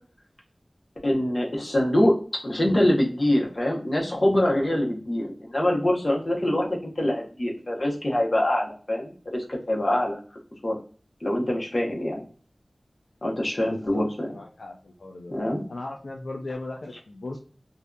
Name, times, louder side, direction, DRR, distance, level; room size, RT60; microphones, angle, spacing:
voice 1, 1.0-2.2 2.4-10.2 10.6-10.7 11.2-12.2 13.2-14.3 15.3-15.6, left 1 dB, 45° left, -1 dB, 0.8 m, -24 dB
voice 2, 13.6-15.3 15.7-17.4, left 2 dB, 85° left, 2 dB, 0.3 m, -37 dB
2.6 x 2.3 x 2.3 m, 0.42 s
wide cardioid pair, 60°, 0 cm